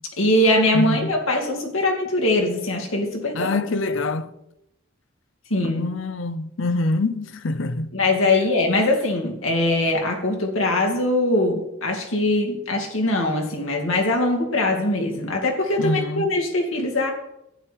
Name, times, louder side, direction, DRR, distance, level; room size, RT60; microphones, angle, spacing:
voice 1, 0.2-3.5 5.5-5.8 7.9-17.1, left 1 dB, 80° left, 2.4 m, -22 dB
voice 2, 0.7-1.2 3.3-4.3 5.6-7.9 15.8-16.3, left 2 dB, 65° left, 0.7 m, -25 dB
12.5 x 9.6 x 4.6 m
head